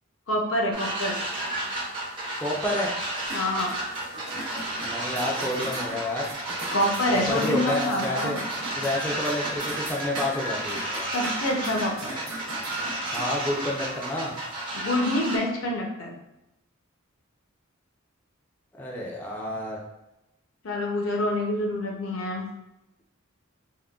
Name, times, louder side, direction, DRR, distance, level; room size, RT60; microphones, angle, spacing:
voice 1, 0.3-1.2 3.3-3.7 6.7-8.4 11.1-12.2 14.7-16.2 20.6-22.5, left 1 dB, 75° left, 0 dB, 0.6 m, -26 dB
sound 1, 0.7-15.4, right 1 dB, 25° right, 0.8 m, -32 dB
voice 2, 2.4-2.9 4.8-6.3 7.1-8.4 8.8-11.1 13.1-14.3 18.8-19.8, left 1 dB, 10° left, -4 dB, 0.4 m, -29 dB
sound 2, 3.3-13.3, right 1 dB, 80° right, 0.7 m, -39 dB
3.6 x 2.1 x 2.3 m, 0.92 s
head